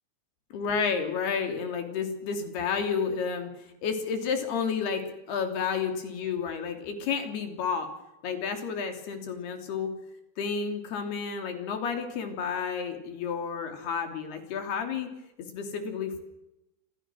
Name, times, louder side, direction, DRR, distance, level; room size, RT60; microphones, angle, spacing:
voice 1, 0.5-3.5 3.8-7.9 8.2-10.0 10.4-15.1 15.4-16.2, left 6 dB, 80° left, 6 dB, 5.2 m, -31 dB
28.5 x 27.0 x 6.4 m, 0.89 s
omnidirectional pair, 4.5 m